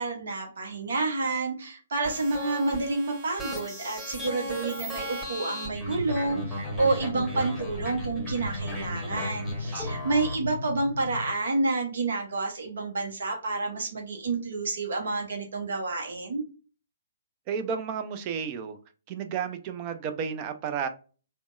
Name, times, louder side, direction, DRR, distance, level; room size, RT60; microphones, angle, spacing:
voice 1, 0.0-16.4, right 3 dB, 55° right, 2 dB, 0.7 m, -29 dB
sound 1, 2.0-10.3, equal, ahead, 1.1 m, -36 dB
sound 2, 5.9-11.3, left 3 dB, 55° left, 0.4 m, -38 dB
voice 2, 17.5-18.8 19.1-20.9, right 7 dB, 30° right, 8 dB, 0.4 m, -32 dB
3.4 x 2.1 x 2.4 m, 0.36 s
figure-of-eight pair, 125°, 0 cm